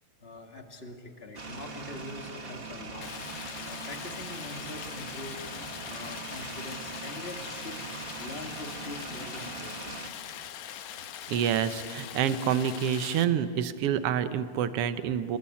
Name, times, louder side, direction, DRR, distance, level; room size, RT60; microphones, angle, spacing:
voice 1, 0.2-3.2 3.6-5.4 5.8-7.8 8.2-10.0, left 2 dB, 25° left, 3 dB, 1.6 m, -43 dB
sound 1, 1.3-10.1, right 4 dB, 30° right, 1.1 m, -41 dB
Stream, 3.0-13.2, left 10 dB, 90° left, 2.7 m, -42 dB
voice 2, 11.3-15.4, right 9 dB, 65° right, 11 dB, 1.6 m, -27 dB
29.5 x 19.5 x 8.5 m, 2.3 s
omnidirectional pair, 3.6 m